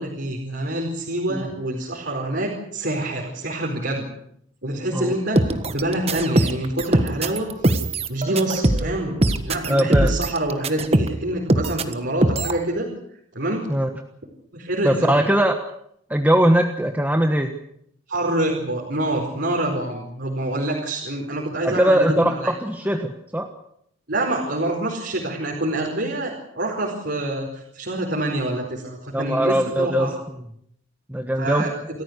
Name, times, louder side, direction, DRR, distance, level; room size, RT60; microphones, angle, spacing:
voice 1, 0.0-4.1 4.6-7.5 8.1-12.9 13.3-13.7 14.5-15.2 18.1-22.5 24.1-30.1 31.4-31.7, right 1 dB, 55° right, -1 dB, 4.8 m, -26 dB
sound 1, 5.3-11.2 11.5-11.9 12.2-12.6, right 1 dB, 30° right, 1.5 m, -21 dB
voice 2, 9.7-10.1 13.7-13.9 14.8-15.5 16.1-17.5 21.6-23.5 29.1-30.1 31.1-31.7, right 1 dB, 10° right, 4 dB, 1.4 m, -20 dB
28.0 x 14.5 x 8.3 m, 0.72 s
head